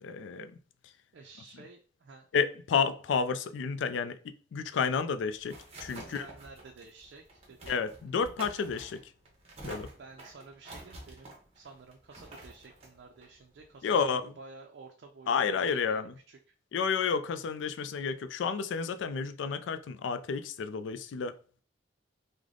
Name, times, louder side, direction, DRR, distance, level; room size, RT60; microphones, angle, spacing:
voice 1, 0.0-0.5 2.3-6.3 7.7-9.1 9.6-9.9 13.8-14.3 15.3-16.1 16.7-21.4, left 5 dB, 85° left, 0.3 m, -31 dB
voice 2, 1.1-2.3 5.8-7.8 10.0-14.0 14.4-16.4, right 3 dB, 65° right, 0.4 m, -52 dB
sound 1, 4.9-14.2, right 1 dB, 30° right, 0.8 m, -49 dB
3.3 x 2.1 x 3.7 m
head